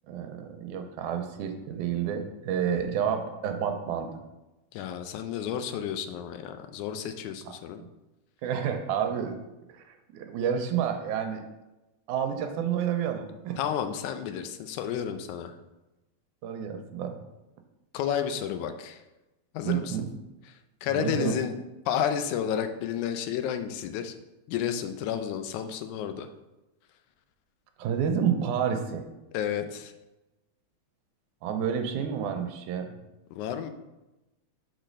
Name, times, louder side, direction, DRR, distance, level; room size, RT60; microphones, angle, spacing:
voice 1, 0.1-4.2 7.8-7.9 8.4-9.4 9.7-9.8 10.1-11.4 12.1-13.6 16.4-17.2 19.6-20.1 20.9-21.4 27.8-29.0 31.4-32.9, right 8 dB, 90° right, 6 dB, 2.1 m, -29 dB
voice 2, 4.7-7.8 13.6-15.5 17.9-19.0 19.5-20.0 20.8-21.6 21.9-24.2 24.5-26.3 29.3-29.9 33.3-33.7, left 9 dB, 80° left, 8 dB, 2.0 m, -31 dB
6.5 x 4.1 x 5.1 m, 1.0 s
omnidirectional pair, 3.5 m